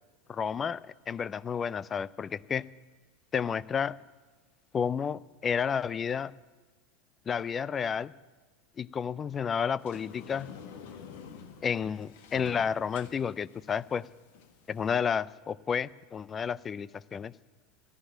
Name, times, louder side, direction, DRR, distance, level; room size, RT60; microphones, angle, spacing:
voice 1, 0.3-0.8 1.1-2.6 3.3-4.0 4.7-6.3 7.3-8.1 8.8-10.5 11.6-14.1 14.7-17.3, left 7 dB, 25° left, 21 dB, 0.4 m, -31 dB
Sliding door, 9.8-14.9, left 7 dB, 60° left, 1.6 m, -48 dB
14.0 x 11.0 x 9.0 m, 1.4 s
figure-of-eight pair, 85°, 0 cm